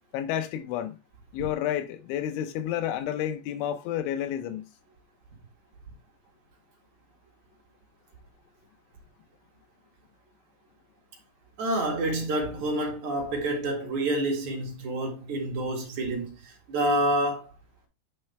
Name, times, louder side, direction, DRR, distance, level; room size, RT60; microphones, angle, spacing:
voice 1, 0.1-1.0 1.3-4.6, left 11 dB, 90° left, 3.3 m, -30 dB
voice 2, 11.6-17.5, right 1 dB, 50° right, 2.8 m, -28 dB
9.2 x 5.7 x 3.3 m
omnidirectional pair, 5.3 m